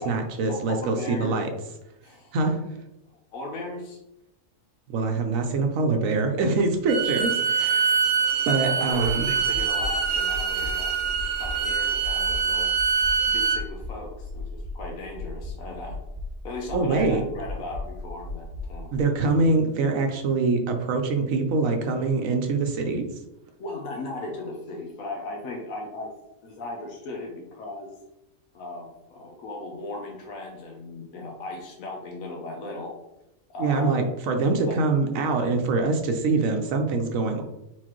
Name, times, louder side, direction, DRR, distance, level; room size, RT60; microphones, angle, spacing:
voice 1, 0.0-1.5 2.3-2.6 4.9-8.0 8.5-9.3 16.7-17.2 18.9-23.1 33.6-37.4, right 3 dB, 85° right, 4 dB, 1.1 m, -24 dB
voice 2, 0.8-1.3 2.0-2.4 3.3-4.0 7.6-7.7 8.6-10.9 11.4-12.7 13.3-16.0 16.4-18.9 23.6-26.1 26.4-28.0 28.5-33.0 33.5-34.0 34.6-34.8, left 2 dB, 85° left, 1 dB, 1.2 m, -37 dB
Bowed string instrument, 6.9-13.6, right 6 dB, 60° right, 0.9 m, -24 dB
sound 1, 9.4-19.0, left 2 dB, 35° right, 0.5 m, -37 dB
4.5 x 3.9 x 3.0 m, 0.90 s
omnidirectional pair, 1.4 m